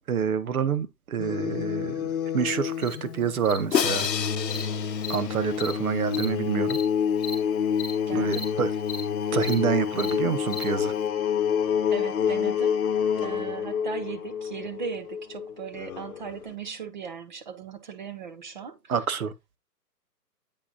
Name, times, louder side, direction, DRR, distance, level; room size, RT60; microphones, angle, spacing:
voice 1, 0.0-4.1 5.1-6.8 8.1-8.7 9.3-10.9 18.9-19.3, right 7 dB, 60° right, 1.0 m, -27 dB
sound 1, 1.2-16.5, left 7 dB, 60° left, 0.9 m, -28 dB
Cricket, 2.8-2.9 3.4-3.6 3.9-4.1 4.5-4.6 5.0-5.2 5.6-5.7 6.1-6.3 6.7-6.8 7.2-7.3 7.8-7.9 8.3-8.4 8.9-9.0 9.4-9.5 10.0-10.1 10.5-10.6, left 3 dB, 10° left, 1.7 m, -35 dB
Crash cymbal, 3.7-5.9, left 8 dB, 90° left, 0.7 m, -29 dB
voice 2, 8.1-8.5 11.9-12.8 13.2-18.9, right 6 dB, 30° right, 0.6 m, -38 dB
8.4 x 5.8 x 2.8 m
figure-of-eight pair, 140°, 48 cm